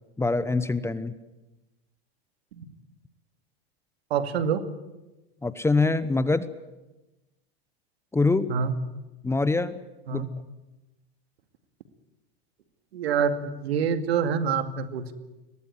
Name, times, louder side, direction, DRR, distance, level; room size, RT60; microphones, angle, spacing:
voice 1, 0.2-1.1 5.4-6.5 8.1-8.5 9.2-9.8 10.1-10.3, left 3 dB, 10° left, 14 dB, 1.0 m, -24 dB
voice 2, 4.1-4.6 8.5-8.7 10.1-10.3 12.9-15.1, right 7 dB, 80° right, 9 dB, 2.4 m, -26 dB
22.0 x 18.0 x 9.7 m, 1.1 s
hypercardioid pair, 110°, 31 cm